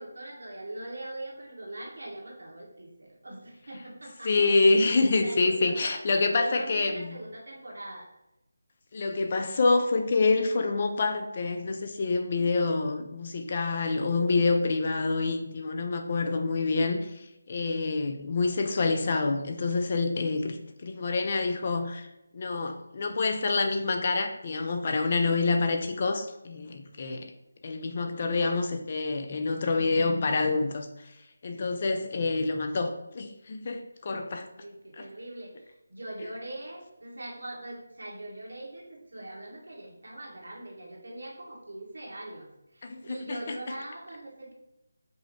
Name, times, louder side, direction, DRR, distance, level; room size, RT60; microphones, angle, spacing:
voice 1, 0.0-4.3 4.8-8.1 34.5-44.5, right 1 dB, 85° right, -2 dB, 1.6 m, -42 dB
voice 2, 4.2-7.2 8.9-17.1 17.5-20.6 20.8-22.1 22.3-27.3 27.6-30.9 31.4-34.5 35.0-35.1 42.8-43.2, left 3 dB, 30° left, 5 dB, 0.4 m, -27 dB
5.3 x 2.1 x 4.2 m, 0.88 s
figure-of-eight pair, 175°, 0 cm